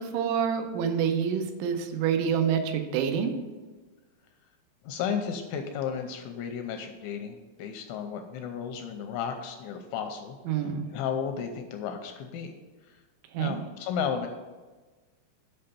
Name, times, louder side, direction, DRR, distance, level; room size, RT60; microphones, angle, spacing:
voice 1, 0.0-3.3 10.5-10.9 13.3-13.6, right 7 dB, 85° right, 6 dB, 3.4 m, -27 dB
voice 2, 4.8-12.6 13.4-14.3, left 7 dB, 85° left, 6 dB, 2.8 m, -34 dB
7.8 x 5.6 x 6.8 m, 1.3 s
omnidirectional pair, 5.7 m